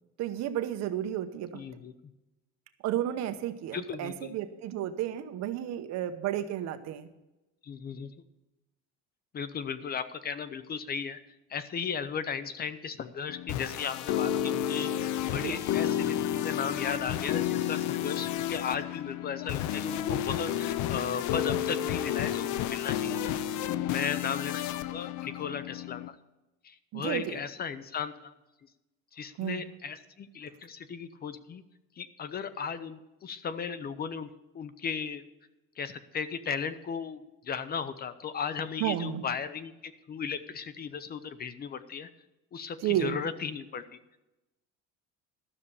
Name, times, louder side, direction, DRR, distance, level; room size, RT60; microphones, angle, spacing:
voice 1, 0.2-1.6 2.8-7.1 15.4-15.6 26.9-27.4 29.4-29.6 38.8-39.2 42.8-43.2, right 11 dB, 55° right, 10 dB, 1.0 m, -32 dB
voice 2, 1.5-1.9 3.7-4.3 7.6-8.1 9.3-11.2 11.5-23.3 23.9-26.2 26.6-28.3 29.1-31.6 32.0-34.3 34.5-35.3 35.8-42.1 42.5-44.0, left 6 dB, 30° left, 13 dB, 0.6 m, -36 dB
sound 1, 13.3-26.1, left 11 dB, 70° left, 0.7 m, -31 dB
12.5 x 6.7 x 6.9 m, 1.0 s
cardioid pair, 145°, 31 cm